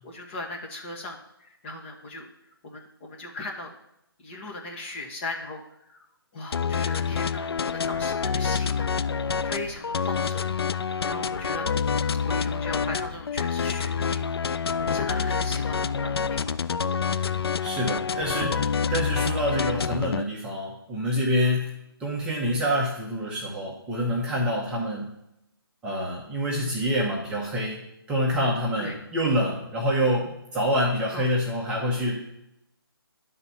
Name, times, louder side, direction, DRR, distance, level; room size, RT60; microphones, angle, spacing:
voice 1, 0.0-2.3 2.6-3.7 4.2-6.0 6.3-8.9 9.4-14.3 14.7-16.5 24.3-24.5 26.6-26.7 28.8-29.0 31.1-31.3, left 2 dB, 30° left, 1 dB, 1.4 m, -38 dB
sound 1, 6.5-20.2, left 6 dB, 75° left, 0.4 m, -27 dB
voice 2, 17.6-21.7 22.0-25.1 25.8-32.2, equal, 5° right, -5 dB, 1.0 m, -27 dB
11.0 x 4.1 x 5.7 m, 0.83 s
hypercardioid pair, 155°, 13 cm